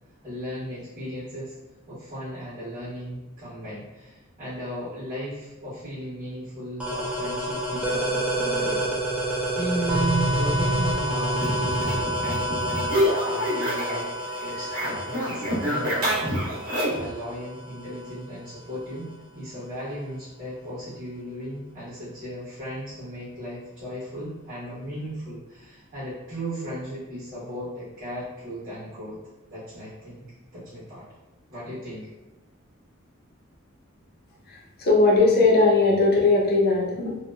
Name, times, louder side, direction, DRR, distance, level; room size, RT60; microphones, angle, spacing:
voice 1, 0.2-1.5 1.9-16.1 16.9-29.2 29.5-30.2 30.5-31.0 31.5-32.1, right 1 dB, 45° right, -15 dB, 1.1 m, -36 dB
sound 1, 6.8-18.2, right 1 dB, 5° right, 0.3 m, -28 dB
sound 2, 11.4-14.1 14.3-17.1, equal, 85° right, 0.9 m, -27 dB
voice 2, 34.5-37.2, left 3 dB, 45° left, -3 dB, 0.6 m, -19 dB
2.8 x 2.0 x 2.2 m, 1.0 s
head